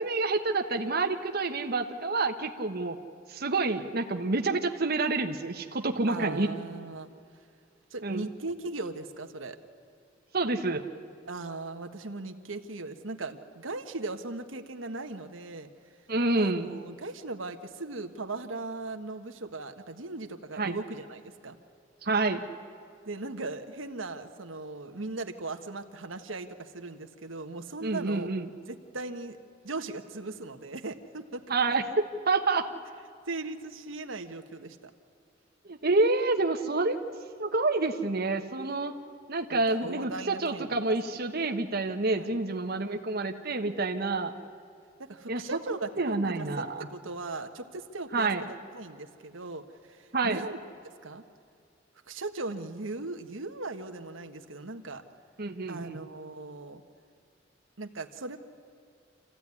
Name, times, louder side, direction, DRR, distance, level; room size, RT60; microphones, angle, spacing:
voice 1, 0.0-3.0 3.3-6.5 8.0-8.3 10.3-10.8 16.1-16.8 20.6-20.8 22.0-22.4 27.8-28.5 31.5-31.8 32.3-32.7 35.6-37.0 37.4-38.9 39.3-44.3 45.3-45.4 46.0-46.9 48.1-48.4 50.1-50.4 55.4-56.0, right 3 dB, 55° right, 4 dB, 1.2 m, -28 dB
voice 2, 6.1-7.1 7.9-9.6 11.3-15.7 16.4-21.6 23.0-28.3 28.7-29.4 29.6-31.4 33.3-34.8 39.8-40.9 42.2-42.4 45.0-50.6 51.0-51.2 52.1-55.0 55.7-56.8 57.8-58.4, right 3 dB, 85° right, 6 dB, 1.3 m, -38 dB
27.0 x 15.0 x 9.7 m, 2.4 s
head